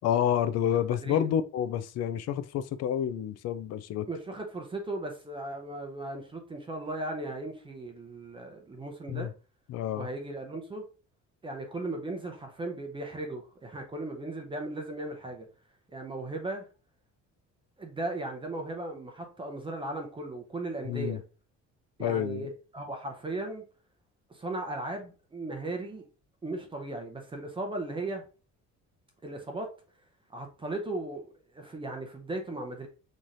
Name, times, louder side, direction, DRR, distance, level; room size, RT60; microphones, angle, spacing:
voice 1, 0.0-4.1 9.1-9.3 9.7-10.1 20.8-21.2 22.0-22.5, left 10 dB, 60° left, 0.4 m, -29 dB
voice 2, 4.1-9.3 9.9-10.8 11.4-15.4 15.9-16.7 17.8-21.2 22.0-23.6 24.3-26.0 26.4-28.2 29.2-29.7 30.3-32.9, right 2 dB, 15° right, 0.7 m, -37 dB
5.6 x 3.1 x 2.6 m
cardioid pair, 165°, 30 cm